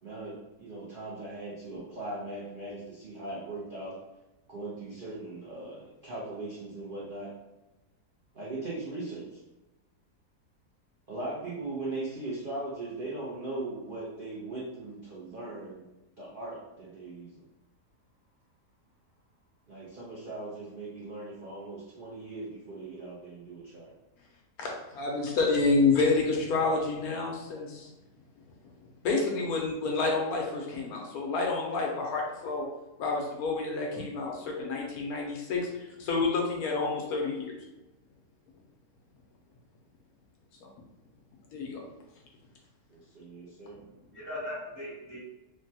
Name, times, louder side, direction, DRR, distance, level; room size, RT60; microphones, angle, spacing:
voice 1, 0.0-4.0 4.5-7.3 8.3-9.4 11.1-15.8 16.2-17.4 19.7-23.9 42.9-43.8, right 2 dB, 65° right, -7 dB, 0.5 m, -39 dB
voice 2, 24.6-27.9 29.0-32.7 33.0-35.7 36.0-37.5 41.5-41.8, left 3 dB, 75° left, -1 dB, 1.0 m, -28 dB
voice 3, 43.7-45.2, left 1 dB, 15° right, -9 dB, 0.7 m, -40 dB
3.2 x 2.2 x 2.7 m, 1.0 s
omnidirectional pair, 1.7 m